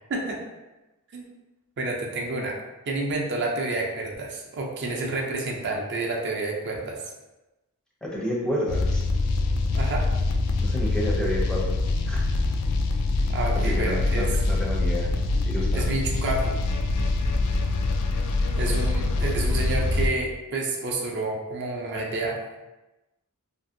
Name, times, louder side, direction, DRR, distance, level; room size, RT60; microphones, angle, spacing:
voice 1, 1.8-2.6 2.9-7.0 9.7-10.1 13.3-14.3 15.7-16.5 18.6-22.4, right 2 dB, 50° right, -1 dB, 0.4 m, -29 dB
voice 2, 8.0-9.0 10.6-11.8 12.1-12.2 13.6-15.1 15.4-16.0, equal, 5° left, -4 dB, 0.5 m, -30 dB
sound 1, 8.7-20.1, left 2 dB, 80° left, 0.3 m, -24 dB
2.6 x 2.5 x 2.5 m, 1.0 s
head